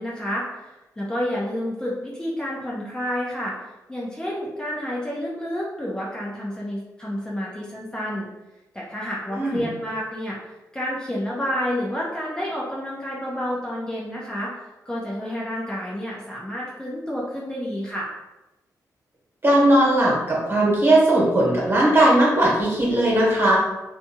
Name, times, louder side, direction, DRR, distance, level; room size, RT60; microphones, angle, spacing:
voice 1, 0.0-3.5 3.9-8.3 8.7-10.4 10.7-14.5 14.9-18.1, equal, 10° left, -6 dB, 0.5 m, -29 dB
voice 2, 9.3-9.7 19.4-23.6, right 1 dB, 35° right, -5 dB, 1.1 m, -18 dB
2.6 x 2.4 x 2.7 m, 1.0 s
cardioid pair, 105°, 7 cm